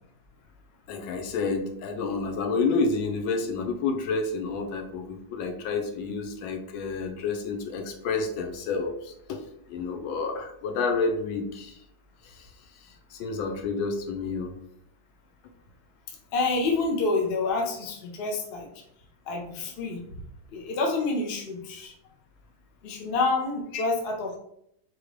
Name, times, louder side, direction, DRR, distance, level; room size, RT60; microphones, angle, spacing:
voice 1, 0.9-9.4 9.7-11.8 12.2-12.5 12.8-14.5 23.7-23.8, left 4 dB, 85° left, 4 dB, 1.5 m, -29 dB
voice 2, 16.3-18.7 19.3-20.0 20.5-21.9 22.8-24.4, left 3 dB, 60° left, 2 dB, 0.6 m, -28 dB
4.8 x 3.0 x 3.1 m, 0.74 s
omnidirectional pair, 2.1 m